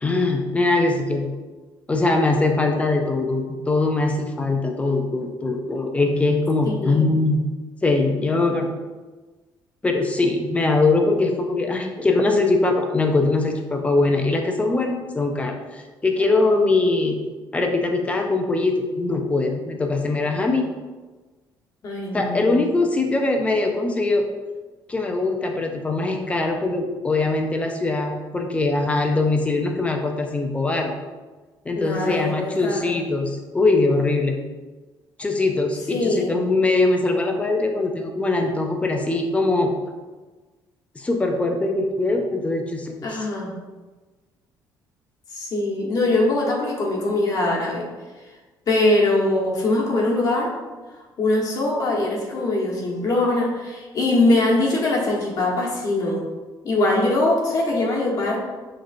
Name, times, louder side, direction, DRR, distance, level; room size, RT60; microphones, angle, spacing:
voice 1, 0.0-1.3 1.9-7.4 7.8-8.7 9.8-17.2 17.5-20.7 22.1-24.3 24.9-30.9 31.7-34.4 35.2-39.7 41.0-43.2, left 2 dB, 15° left, 3 dB, 0.5 m, -22 dB
voice 2, 6.6-7.0 21.8-22.6 31.8-33.0 35.9-36.3 43.0-43.5 45.3-47.8 48.7-50.5 51.2-56.2 56.6-58.4, left 2 dB, 45° left, -2 dB, 1.2 m, -22 dB
6.3 x 3.2 x 2.6 m, 1.3 s
cardioid pair, 135°, 8 cm